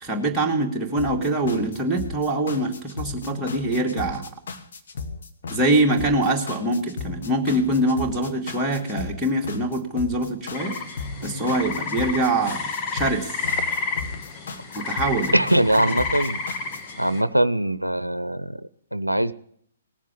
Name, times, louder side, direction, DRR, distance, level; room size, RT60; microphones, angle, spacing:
voice 1, 0.0-4.3 5.5-10.7 11.2-12.6 12.9-13.4 14.7-15.4, right 1 dB, 5° right, -2 dB, 2.4 m, -24 dB
sound 1, 1.0-17.0, left 4 dB, 50° left, 1.6 m, -35 dB
sound 2, 10.5-17.2, left 4 dB, 25° left, 1.6 m, -30 dB
voice 2, 15.3-16.4 17.0-19.3, right 1 dB, 85° right, 17 dB, 0.6 m, -22 dB
19.0 x 7.3 x 9.7 m, 0.67 s
figure-of-eight pair, 125°, 0 cm